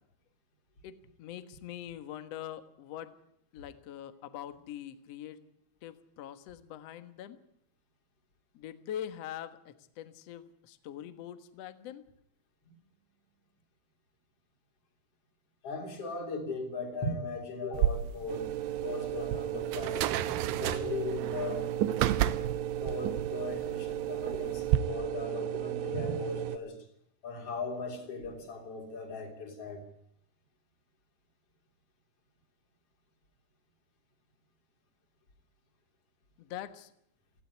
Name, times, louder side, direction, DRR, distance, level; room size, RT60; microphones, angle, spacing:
voice 1, 0.8-3.2 3.5-5.4 5.8-7.4 8.5-12.0 36.4-36.9, left 10 dB, 60° left, 1.8 m, -43 dB
voice 2, 15.6-18.5 18.8-20.3 20.6-21.7 22.8-26.8 27.2-29.8, left 3 dB, 40° left, 4.0 m, -38 dB
sound 1, 17.7-24.8, right 12 dB, 85° right, 3.0 m, -32 dB
sound 2, 18.3-26.6, right 12 dB, 70° right, 1.9 m, -34 dB
18.0 x 16.0 x 9.6 m
omnidirectional pair, 4.5 m